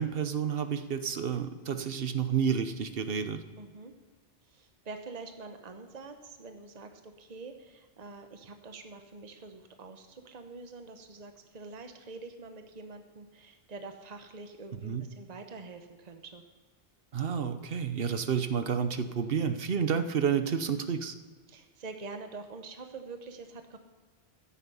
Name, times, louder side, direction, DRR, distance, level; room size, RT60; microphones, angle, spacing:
voice 1, 0.0-3.4 14.8-15.0 17.1-21.1, right 7 dB, 65° right, 10 dB, 1.1 m, -30 dB
voice 2, 3.6-3.9 4.5-16.4 21.5-23.8, right 3 dB, 40° right, 6 dB, 1.1 m, -46 dB
14.0 x 9.9 x 5.5 m, 1.4 s
omnidirectional pair, 1.1 m